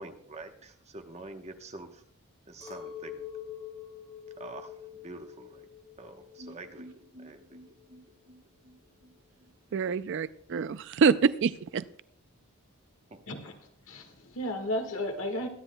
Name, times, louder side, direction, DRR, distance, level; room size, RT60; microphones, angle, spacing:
voice 1, 0.0-2.0 2.5-3.3 4.4-5.7 6.0-6.9 7.2-7.6 13.1-13.2, right 2 dB, 30° right, 6 dB, 0.9 m, -46 dB
Chink clink, 2.6-7.0 7.2-8.0, left 9 dB, 25° left, 3.0 m, -45 dB
sound 1, 6.4-10.2 10.5-10.6 10.9-11.0, right 1 dB, 85° right, 1.8 m, -53 dB
voice 2, 9.7-11.8, right 5 dB, 55° right, 16 dB, 0.3 m, -26 dB
voice 3, 13.3-15.5, left 1 dB, 65° left, 5 dB, 1.5 m, -34 dB
23.0 x 9.8 x 2.2 m, 0.64 s
head